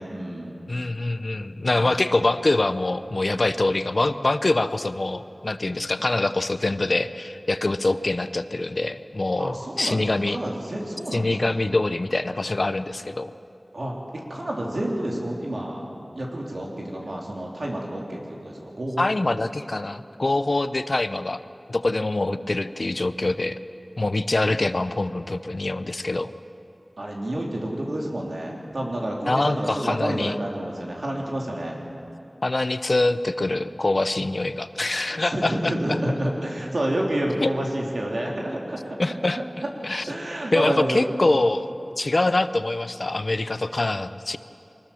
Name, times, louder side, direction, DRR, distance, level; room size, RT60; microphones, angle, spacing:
voice 1, 0.0-0.6 1.7-2.0 9.4-11.5 13.7-14.0 14.3-15.9 16.1-19.0 22.7-22.8 27.0-31.8 35.0-39.0 40.0-41.5, right 1 dB, 75° right, -1 dB, 3.4 m, -29 dB
voice 2, 0.7-10.4 11.1-13.3 19.0-21.4 21.7-23.6 24.0-26.3 29.3-30.3 32.4-35.7 37.4-37.5 39.0-39.4 39.8-40.1 40.5-41.7 42.0-44.4, left 2 dB, 60° left, 12 dB, 0.7 m, -24 dB
23.5 x 19.0 x 7.1 m, 2.7 s
wide cardioid pair, 55°, 0 cm